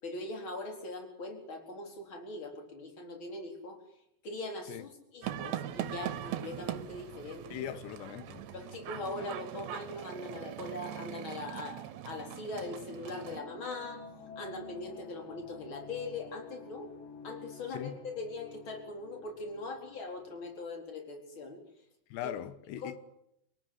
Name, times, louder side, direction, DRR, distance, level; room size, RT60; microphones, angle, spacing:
voice 1, 0.0-3.8 4.2-7.4 8.5-14.0 14.4-16.9 17.2-21.6 22.2-22.4 22.8-22.9, left 2 dB, 30° left, 4.7 m, -41 dB
sound 1, 5.2-13.4, right 12 dB, 80° right, 3.3 m, -41 dB
voice 2, 7.5-8.5 9.2-9.3 17.7-17.9 22.1-23.0, left 11 dB, 80° left, 3.4 m, -40 dB
sound 2, 13.2-20.6, left 5 dB, 55° left, 3.8 m, -51 dB
26.5 x 18.5 x 9.6 m
omnidirectional pair, 5.0 m